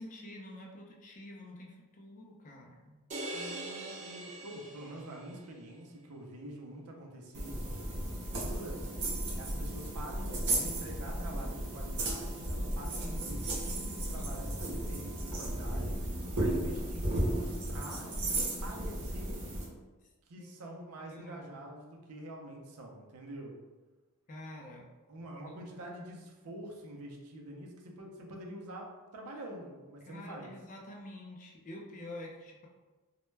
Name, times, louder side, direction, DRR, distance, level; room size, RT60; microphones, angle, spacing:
voice 1, 0.0-3.0 14.1-14.6 20.4-20.6 21.1-21.5 24.3-24.9 25.5-25.6 30.1-32.7, left 1 dB, 35° left, 0 dB, 0.4 m, -48 dB
sound 1, 3.1-5.5, right 2 dB, 35° right, 0.3 m, -42 dB
voice 2, 3.3-8.9 9.3-16.0 16.4-19.4 20.3-23.6 25.1-30.5, right 1 dB, 90° right, 0 dB, 0.5 m, -46 dB
sound 2, 7.3-19.7, right 1 dB, 55° right, 0.7 m, -34 dB
2.2 x 2.1 x 3.1 m, 1.2 s
head